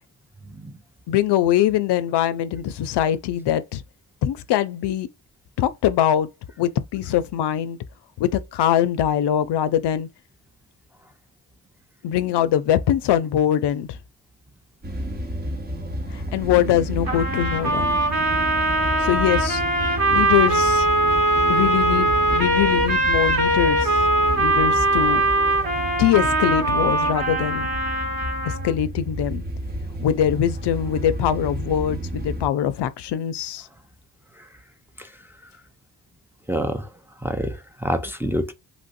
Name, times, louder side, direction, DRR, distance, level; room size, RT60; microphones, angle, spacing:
voice 1, 0.5-0.8 35.0-35.1 36.5-36.9 37.2-38.5, equal, 5° right, 0.5 m, -27 dB
voice 2, 1.1-3.8 4.2-5.1 5.6-6.3 6.6-7.8 8.2-10.1 12.0-14.0 16.1-18.0 19.0-19.6 20.1-20.9 21.5-24.0 24.4-25.2 26.0-27.7 28.5-29.4 30.0-33.7, left 11 dB, 75° left, 0.5 m, -22 dB
sound 1, 14.8-32.5, equal, 25° right, 0.9 m, -31 dB
sound 2, 17.1-28.7, right 1 dB, 55° right, 1.3 m, -21 dB
3.1 x 2.6 x 2.5 m
cardioid pair, 55°, 42 cm